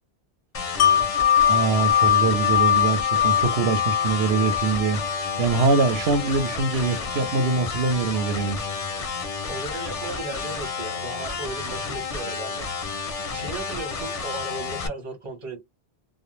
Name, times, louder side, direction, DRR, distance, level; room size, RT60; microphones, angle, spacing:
sound 1, 0.5-14.9, left 5 dB, 45° left, 0.5 m, -31 dB
Wind chime, 0.8-6.6 7.0-7.1, left 9 dB, 85° left, 0.8 m, -22 dB
voice 1, 1.5-8.6, right 4 dB, 85° right, 0.8 m, -23 dB
voice 2, 9.5-12.7 12.9-15.6, right 3 dB, 35° right, 0.8 m, -36 dB
2.2 x 2.1 x 3.0 m
omnidirectional pair, 1.0 m